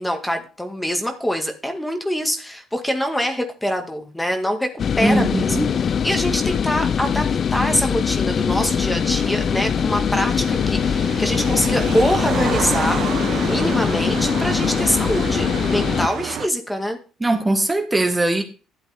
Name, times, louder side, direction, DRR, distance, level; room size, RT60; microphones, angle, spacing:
voice 1, 0.0-4.7 5.0-5.6 6.0-13.0 13.3-17.0, equal, 10° left, 1.8 m, -24 dB
sound 1, 4.8-16.1, left 7 dB, 50° left, 0.4 m, -22 dB
voice 2, 5.0-5.7 17.2-18.4, right 2 dB, 15° right, 1.7 m, -20 dB
sound 2, 8.3-16.5, right 9 dB, 65° right, 0.7 m, -30 dB
12.0 x 8.0 x 3.5 m
supercardioid pair, 70°, 0 cm